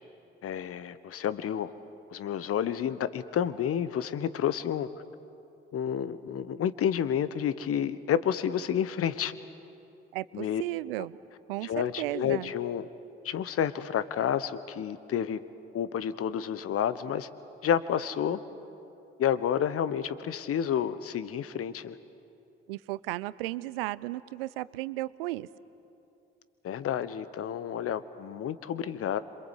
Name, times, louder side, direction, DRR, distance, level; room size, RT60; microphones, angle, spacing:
voice 1, 0.4-1.7 2.1-4.9 5.7-9.3 10.3-10.6 11.6-12.9 13.2-15.4 15.7-17.3 17.6-18.4 19.2-22.0 26.6-29.2, left 9 dB, 50° left, 15 dB, 1.2 m, -30 dB
voice 2, 10.1-11.2 11.5-12.5 22.7-25.5, right 17 dB, 75° right, 19 dB, 0.6 m, -34 dB
27.0 x 25.0 x 8.3 m, 2.8 s
figure-of-eight pair, 45°, 29 cm